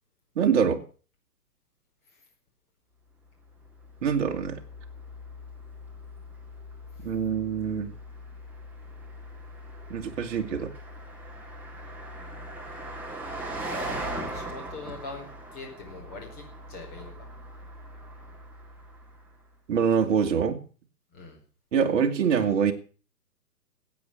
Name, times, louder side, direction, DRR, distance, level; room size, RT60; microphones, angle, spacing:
voice 1, 0.4-0.8 4.0-4.6 7.0-7.9 9.9-10.7 19.7-20.6 21.7-22.7, right 7 dB, 45° right, 3 dB, 2.1 m, -24 dB
Car passing by, 3.6-19.3, right 1 dB, 5° right, 1.9 m, -40 dB
voice 2, 13.6-17.1 21.1-21.4, left 3 dB, 20° left, 0 dB, 4.8 m, -43 dB
15.5 x 8.8 x 6.6 m, 0.39 s
hypercardioid pair, 150°, 49 cm